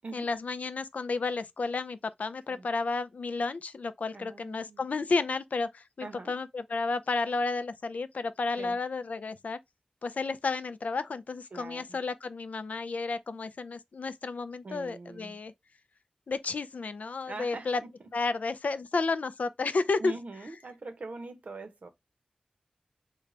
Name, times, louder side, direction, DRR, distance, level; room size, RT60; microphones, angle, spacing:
voice 1, 0.1-9.6 10.0-15.5 16.3-17.8 18.1-20.1, left 3 dB, 75° left, 0.3 m, -32 dB
voice 2, 4.1-4.8 6.0-6.3 8.6-8.8 11.5-12.0 14.6-15.4 17.2-17.9 20.0-21.9, right 3 dB, 70° right, 0.7 m, -43 dB
3.3 x 2.1 x 3.7 m
wide cardioid pair, 65°, 3 cm